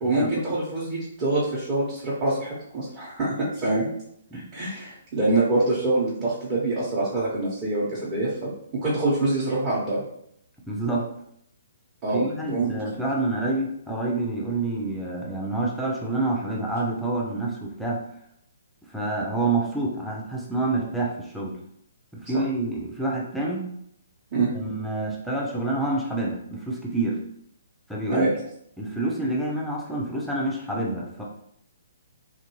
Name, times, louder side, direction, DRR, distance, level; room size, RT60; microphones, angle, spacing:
voice 1, 0.0-3.9 4.3-8.5 8.8-10.0 12.0-12.7 24.3-24.5 28.1-28.3, right 2 dB, 30° right, -9 dB, 1.0 m, -25 dB
voice 2, 10.7-11.1 12.1-18.0 18.9-21.6 22.1-23.7 24.5-27.2 27.9-28.3 28.8-31.2, right 2 dB, ahead, -3 dB, 0.5 m, -27 dB
3.0 x 2.6 x 3.0 m, 0.73 s
figure-of-eight pair, 130°, 0 cm